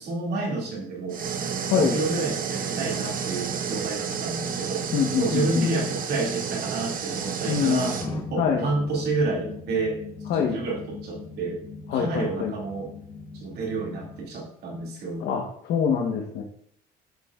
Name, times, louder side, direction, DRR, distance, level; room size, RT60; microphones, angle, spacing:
voice 1, 0.0-1.3 1.7-4.9 5.2-8.0 8.3-10.0 10.3-11.6 11.9-12.9 13.3-15.3, right 3 dB, 75° right, -1 dB, 2.5 m, -29 dB
sound 1, 1.1-8.1, right 6 dB, 55° right, 1.0 m, -31 dB
voice 2, 4.9-5.7 7.5-7.9 8.4-8.7 10.3-10.6 11.9-12.5 15.2-16.4, left 6 dB, 75° left, 1 dB, 1.2 m, -24 dB
sound 2, 8.0-14.2, left 3 dB, 35° left, 2.0 m, -39 dB
11.0 x 6.4 x 2.4 m, 0.68 s
cardioid pair, 110°, 17 cm